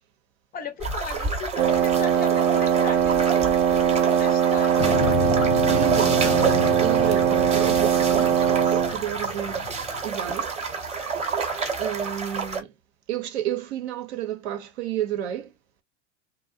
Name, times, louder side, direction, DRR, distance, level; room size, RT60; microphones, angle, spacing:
voice 1, 0.5-5.1, left 4 dB, 25° left, 0.5 m, -36 dB
sound 1, 0.8-12.6, right 5 dB, 20° right, 0.9 m, -29 dB
Wind instrument woodwind instrument, 1.6-9.0, right 9 dB, 35° right, 0.4 m, -21 dB
Motorcycle, 4.8-10.0, left 9 dB, 70° left, 0.5 m, -31 dB
voice 2, 5.7-9.7 10.0-10.6 11.8-12.7 13.1-15.5, right 10 dB, 65° right, 0.8 m, -31 dB
2.5 x 2.1 x 2.5 m
hypercardioid pair, 90°, 35 cm